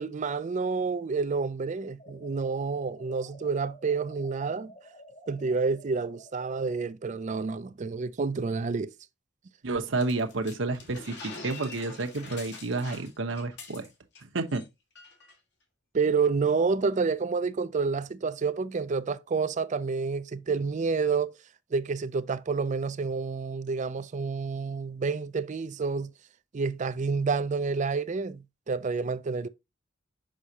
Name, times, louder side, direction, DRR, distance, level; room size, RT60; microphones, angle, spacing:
voice 1, 0.0-4.7 5.3-8.9 15.9-21.4 21.7-26.1 26.5-29.5, right 4 dB, 40° right, 0.4 m, -29 dB
sound 1, 2.0-6.9, equal, 40° left, 1.5 m, -51 dB
voice 2, 9.6-13.9 14.3-14.6, right 3 dB, 70° right, 0.9 m, -30 dB
sound 2, 10.0-14.2 14.5-14.7 15.0-15.3, left 3 dB, 60° left, 1.8 m, -45 dB
6.3 x 5.5 x 2.8 m
head